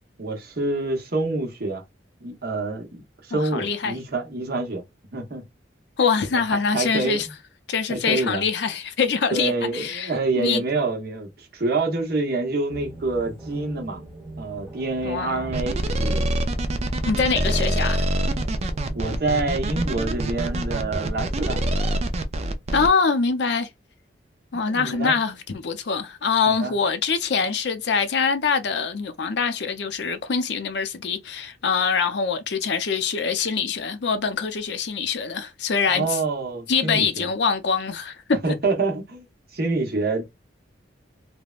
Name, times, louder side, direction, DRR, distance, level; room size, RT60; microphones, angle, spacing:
voice 1, 0.2-1.8 2.2-4.8 5.1-5.4 6.3-6.4 6.7-7.2 7.9-8.4 9.3-14.0 14.4-16.3 18.9-21.8 24.7-25.1 26.5-26.7 35.9-37.2 38.4-39.3 39.5-40.2, right 3 dB, 55° right, 0.9 m, -27 dB
voice 2, 3.3-4.0 6.0-7.3 7.7-10.6 15.0-15.5 17.1-18.1 22.7-23.7 24.5-36.2 36.7-38.2, left 5 dB, 65° left, 0.5 m, -24 dB
sound 1, 12.7-21.7, right 2 dB, 5° right, 1.0 m, -40 dB
sound 2, 15.5-22.9, right 1 dB, 35° right, 0.4 m, -25 dB
3.3 x 2.1 x 2.3 m
head